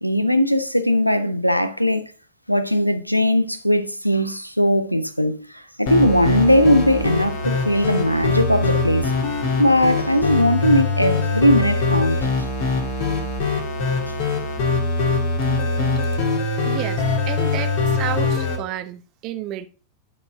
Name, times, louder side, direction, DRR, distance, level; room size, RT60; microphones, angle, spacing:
voice 1, 0.0-2.0 2.5-9.1 9.6-12.3, equal, 90° left, 0.6 m, -19 dB
sound 1, 5.9-18.6, left 3 dB, 50° left, 1.8 m, -22 dB
voice 2, 16.6-19.7, right 13 dB, 40° right, 0.8 m, -31 dB
10.0 x 4.4 x 3.6 m
figure-of-eight pair, 90°, 0 cm